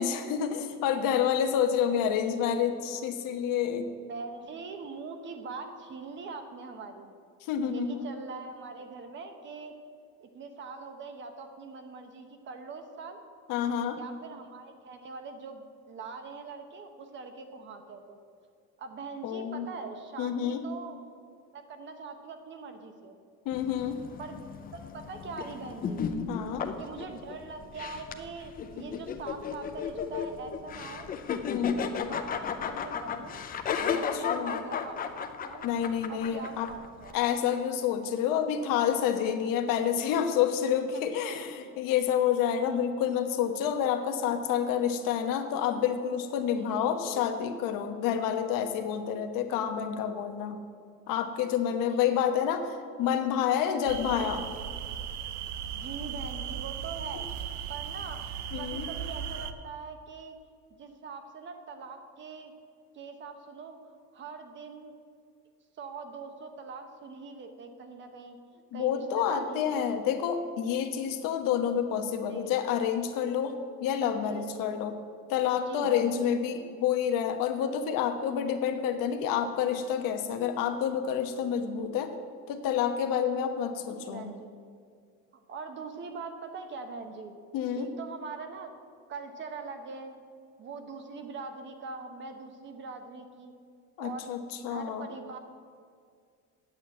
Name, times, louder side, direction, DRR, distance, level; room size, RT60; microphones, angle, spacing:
voice 1, 0.0-3.9 7.5-8.1 13.5-14.0 19.2-19.7 20.2-20.6 23.4-24.0 26.3-26.7 31.5-31.8 34.1-34.6 35.6-36.7 37.1-50.6 51.1-54.4 58.5-58.9 68.7-75.0 75.3-82.1 82.5-84.3 87.5-87.9 94.0-95.1, left 8 dB, 85° left, 7 dB, 1.2 m, -28 dB
voice 2, 2.0-2.6 4.1-7.1 7.6-13.2 13.9-18.2 18.8-21.0 21.5-23.2 24.2-24.4 24.7-26.1 26.8-31.1 31.6-33.4 33.8-35.7 36.1-37.2 40.9-41.4 42.6-42.8 46.5-47.2 51.9-52.2 55.7-57.3 57.7-58.2 58.6-60.4 60.8-62.5 62.9-63.8 64.1-64.9 65.8-70.0 72.2-72.5 73.9-74.8 75.7-76.3 83.8-84.5 85.5-87.4 87.8-88.7 89.1-90.2 90.6-93.5 94.0-94.3 94.7-95.4, right 4 dB, 35° right, 6 dB, 1.0 m, -42 dB
female demon laugh, 23.5-37.1, left 7 dB, 25° left, 0.5 m, -35 dB
sound 1, 53.9-59.5, right 8 dB, 60° right, 0.7 m, -37 dB
8.7 x 7.6 x 8.7 m, 2.2 s
cardioid pair, 180°, 32 cm